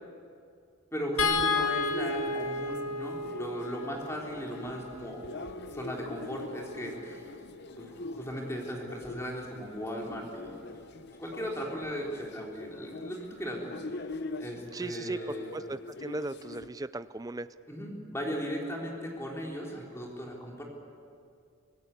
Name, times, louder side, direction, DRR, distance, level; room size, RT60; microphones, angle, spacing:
voice 1, 0.9-5.2 5.7-7.2 7.8-10.6 11.2-13.7 14.4-15.5 17.7-20.6, equal, 15° left, -1 dB, 3.5 m, -37 dB
sound 1, 1.2-7.5 9.0-9.2 9.6-9.7, left 3 dB, 80° left, 2.3 m, -34 dB
sound 2, 1.2-16.7, left 2 dB, 50° left, 0.8 m, -43 dB
voice 2, 14.7-17.5, right 2 dB, 15° right, 14 dB, 0.5 m, -37 dB
24.0 x 17.0 x 8.3 m, 2.4 s
head